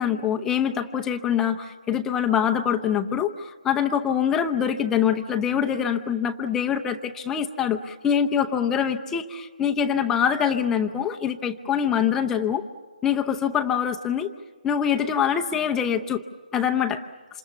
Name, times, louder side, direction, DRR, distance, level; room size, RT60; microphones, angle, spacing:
voice 1, 0.0-12.6 13.0-14.3 14.6-16.2 16.5-17.0, left 8 dB, 10° left, 5 dB, 0.7 m, -24 dB
27.5 x 27.0 x 7.1 m, 1.5 s
figure-of-eight pair, 155°, 5 cm